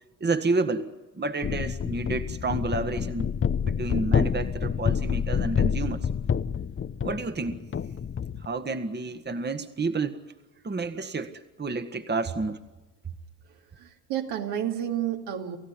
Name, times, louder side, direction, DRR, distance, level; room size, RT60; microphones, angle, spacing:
voice 1, 0.2-3.3 3.6-6.1 7.0-7.6 8.4-10.2 10.6-12.6 13.0-13.1, right 3 dB, 20° right, 9 dB, 1.6 m, -30 dB
sound 1, 1.4-8.5, left 7 dB, 25° left, 0.9 m, -28 dB
voice 2, 13.8-15.6, right 10 dB, 65° right, 2 dB, 2.6 m, -30 dB
28.5 x 15.5 x 9.9 m, 1.2 s
hypercardioid pair, 55°, 48 cm